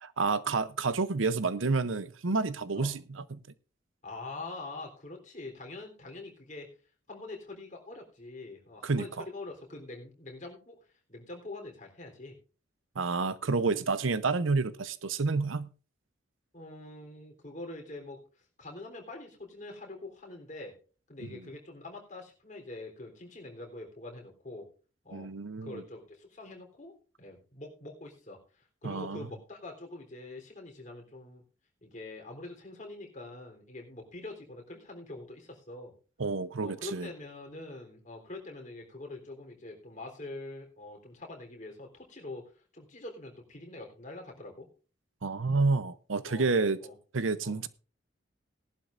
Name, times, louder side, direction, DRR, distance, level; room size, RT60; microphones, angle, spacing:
voice 1, 0.0-3.0 3.3-3.4 8.8-9.2 13.0-15.7 21.2-21.4 25.1-25.8 28.8-29.3 36.2-37.1 45.2-46.8 47.1-47.7, right 4 dB, 85° right, 0.8 m, -29 dB
voice 2, 4.0-6.7 7.1-10.8 11.1-12.4 16.5-20.7 21.1-24.7 25.0-25.3 25.6-26.9 27.2-31.4 31.8-35.9 36.6-44.7 46.2-46.5 46.8-46.9 47.4-47.6, left 2 dB, 40° left, 3.6 m, -44 dB
18.0 x 11.5 x 2.6 m
head